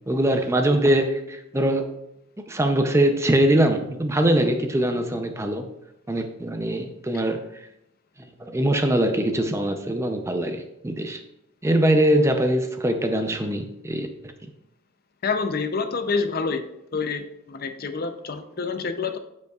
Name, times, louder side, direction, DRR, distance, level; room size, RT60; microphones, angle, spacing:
voice 1, 0.1-2.0 2.5-5.7 6.1-7.5 8.4-11.2 11.6-14.1 14.4-14.5, right 1 dB, 15° right, 6 dB, 0.5 m, -22 dB
voice 2, 15.2-16.6 16.9-19.2, left 4 dB, 45° left, 8 dB, 0.6 m, -27 dB
15.5 x 5.3 x 2.4 m, 0.84 s
head